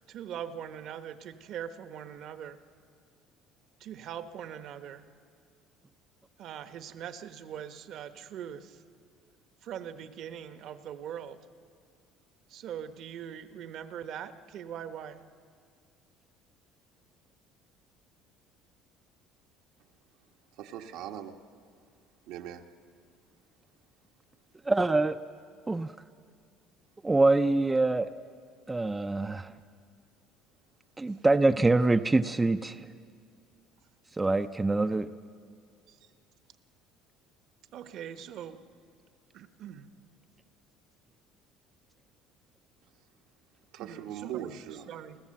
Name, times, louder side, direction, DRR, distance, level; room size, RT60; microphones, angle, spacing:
voice 1, 0.1-2.6 3.8-5.1 6.4-8.8 9.6-11.4 12.5-15.2 35.9-36.0 37.7-38.6 39.3-39.9 43.8-44.6 44.8-45.2, right 9 dB, 55° right, 10 dB, 1.0 m, -41 dB
voice 2, 20.6-21.4 22.3-22.7 43.7-44.9, right 10 dB, 75° right, 4 dB, 1.2 m, -40 dB
voice 3, 24.7-25.2 25.7-25.9 27.0-28.1 28.7-29.5 31.0-32.9 34.2-35.1, right 2 dB, 15° right, 9 dB, 0.5 m, -25 dB
29.0 x 14.0 x 7.6 m, 2.2 s
cardioid pair, 125°, 0 cm